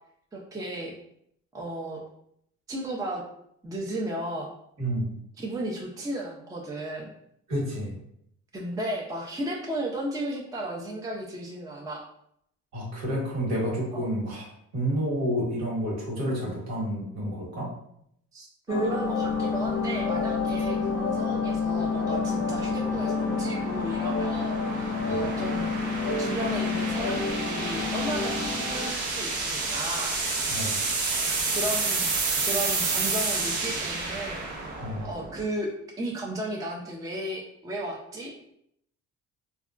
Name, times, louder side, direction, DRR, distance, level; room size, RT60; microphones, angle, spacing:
voice 1, 0.3-0.9 1.5-2.0 2.7-3.2 3.6-4.5 5.4-7.1 8.5-12.0 13.9-14.1 18.3-25.7 26.2-30.2 31.5-32.1 32.4-34.4 35.0-35.7 36.0-38.3, right 1 dB, 10° right, -1 dB, 0.4 m, -34 dB
voice 2, 4.8-5.1 7.5-7.9 12.7-17.7 25.1-25.2 30.5-30.8 34.8-35.1, equal, 60° right, -4 dB, 1.2 m, -30 dB
sound 1, 18.7-28.9, left 4 dB, 40° left, 0.6 m, -28 dB
sound 2, 19.2-35.5, right 3 dB, 80° right, 0.7 m, -31 dB
3.3 x 2.2 x 2.4 m, 0.73 s
cardioid pair, 90°, 30 cm